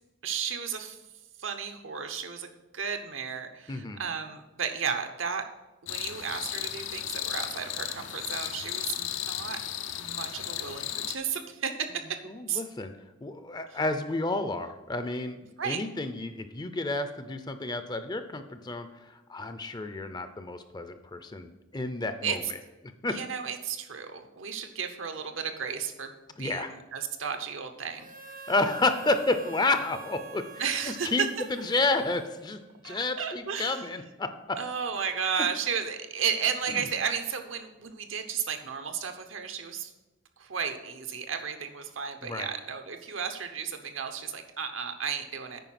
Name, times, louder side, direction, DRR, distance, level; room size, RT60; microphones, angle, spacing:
voice 1, 0.2-1.0 1.4-5.5 5.8-9.6 10.0-12.2 12.5-12.6 13.7-13.8 15.6-15.8 22.2-22.5 23.1-26.1 26.4-28.1 30.6-31.3 32.8-33.9 34.6-39.9 40.4-45.6, right 7 dB, 75° right, 6 dB, 0.9 m, -33 dB
voice 2, 3.7-4.0 12.3-12.9 13.2-18.9 19.3-22.4 23.0-23.2 26.4-26.7 28.5-31.2 31.5-34.6 42.2-42.5, left 2 dB, 20° left, 9 dB, 0.5 m, -30 dB
sound 1, 5.9-11.2, left 10 dB, 70° left, 0.6 m, -35 dB
Harmonica, 28.0-32.8, right 3 dB, 40° right, 0.6 m, -46 dB
9.1 x 5.3 x 5.9 m, 1.0 s
head